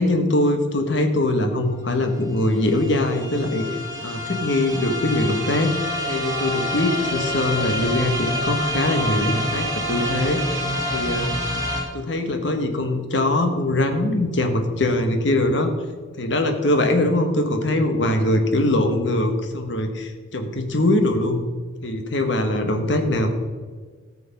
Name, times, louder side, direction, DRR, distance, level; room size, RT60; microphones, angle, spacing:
voice 1, 0.0-3.6 4.0-5.7 6.1-10.4 10.9-11.4 11.9-15.7 16.2-21.4 21.8-23.3, left 1 dB, 60° left, 5 dB, 1.3 m, -22 dB
sound 1, 1.6-1.7 1.9-11.8, left 1 dB, 15° right, 1.8 m, -27 dB
14.0 x 6.8 x 5.3 m, 1.5 s
head